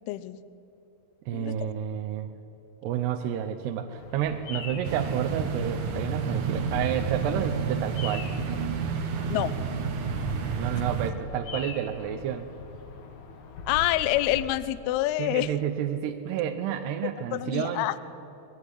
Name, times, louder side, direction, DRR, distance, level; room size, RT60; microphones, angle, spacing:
voice 1, 0.1-0.4 1.3-1.6 9.3-9.6 10.5-10.6 13.7-15.5 17.3-18.0, left 15 dB, 80° left, 14 dB, 2.4 m, -27 dB
voice 2, 1.3-2.3 2.8-8.3 10.2-12.5 15.2-17.9, right 9 dB, 75° right, 6 dB, 2.8 m, -30 dB
Bird vocalization bird call bird song, 4.0-14.5, left 4 dB, 55° left, 2.5 m, -41 dB
sound 1, 4.8-11.1, right 6 dB, 60° right, 2.2 m, -30 dB
22.5 x 20.0 x 9.9 m, 2.9 s
omnidirectional pair, 5.3 m